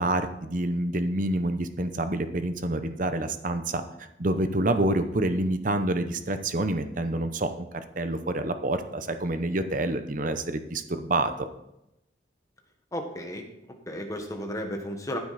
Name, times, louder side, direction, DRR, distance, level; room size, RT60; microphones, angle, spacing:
voice 1, 0.0-3.8 4.2-7.7 8.0-11.5, right 1 dB, 45° right, 9 dB, 0.9 m, -27 dB
voice 2, 12.9-15.2, equal, 20° left, 3 dB, 1.4 m, -34 dB
14.5 x 8.1 x 4.2 m, 0.86 s
head